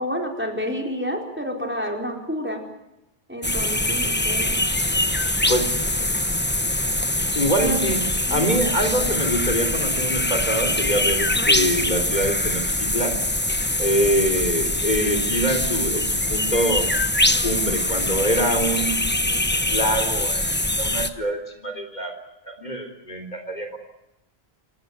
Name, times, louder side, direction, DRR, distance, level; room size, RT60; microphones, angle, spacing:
voice 1, 0.0-2.6 3.3-4.5 7.6-7.8 8.3-8.6, equal, 10° right, 2 dB, 4.3 m, -29 dB
sound 1, 3.4-21.1, left 1 dB, 10° left, 1.1 m, -23 dB
voice 2, 7.3-8.0 8.3-13.2 13.8-16.8 17.4-19.0 19.7-22.1 22.5-23.8, equal, 45° left, 5 dB, 3.7 m, -25 dB
28.0 x 18.5 x 9.4 m, 0.92 s
omnidirectional pair, 1.0 m